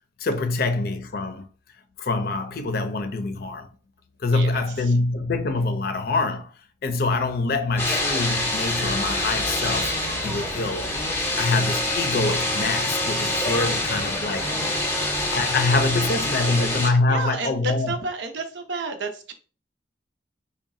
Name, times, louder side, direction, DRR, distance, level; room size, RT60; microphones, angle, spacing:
voice 1, 0.2-1.5 2.0-3.7 4.2-6.5 6.8-9.9 10.2-10.9 11.4-14.5 15.3-17.9, left 3 dB, 55° left, 0.5 m, -25 dB
voice 2, 4.3-5.0 14.4-14.5 14.8-15.3 15.9-16.1 16.5-19.3, right 3 dB, 85° right, 0.7 m, -33 dB
sound 1, 7.8-16.9, left 1 dB, 15° left, 0.7 m, -26 dB
sound 2, 9.1-9.3 9.6-11.0 11.5-13.3 13.8-15.6, right 3 dB, 30° right, 0.6 m, -44 dB
4.0 x 2.1 x 3.6 m
head